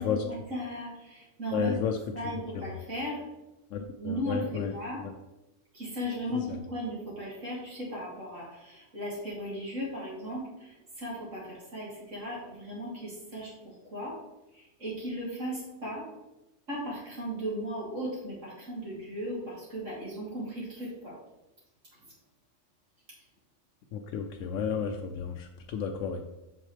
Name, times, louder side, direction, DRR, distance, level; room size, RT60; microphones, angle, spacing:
voice 1, 0.0-1.8 2.1-3.2 4.0-5.0 5.7-14.2 14.5-16.1 16.7-21.1, equal, 75° right, -5 dB, 3.0 m, -36 dB
voice 2, 1.5-2.0 2.2-2.6 3.7-5.1 6.3-6.6 23.9-26.2, left 6 dB, 90° left, 4 dB, 1.0 m, -32 dB
7.5 x 6.1 x 3.3 m, 0.99 s
omnidirectional pair, 1.3 m